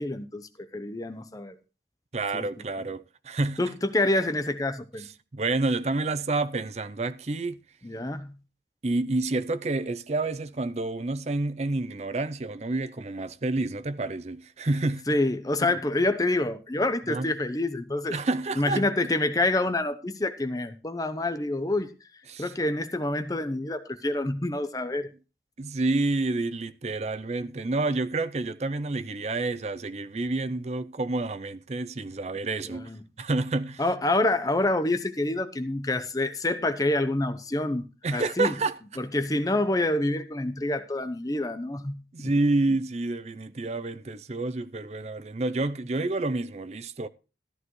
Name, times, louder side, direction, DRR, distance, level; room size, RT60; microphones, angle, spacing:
voice 1, 0.0-1.6 2.3-2.5 3.6-5.1 7.8-8.3 15.1-18.1 18.6-21.9 22.4-25.1 32.6-33.0 33.8-37.9 38.1-38.5 39.0-42.3, left 2 dB, 20° left, 0.8 m, -27 dB
voice 2, 2.1-3.6 5.0-7.6 8.8-15.0 15.6-15.7 17.1-17.3 18.1-19.1 22.3-22.5 25.6-32.9 33.2-33.8 38.0-38.8 42.1-47.1, right 2 dB, 40° right, 0.5 m, -29 dB
13.5 x 12.0 x 3.1 m
head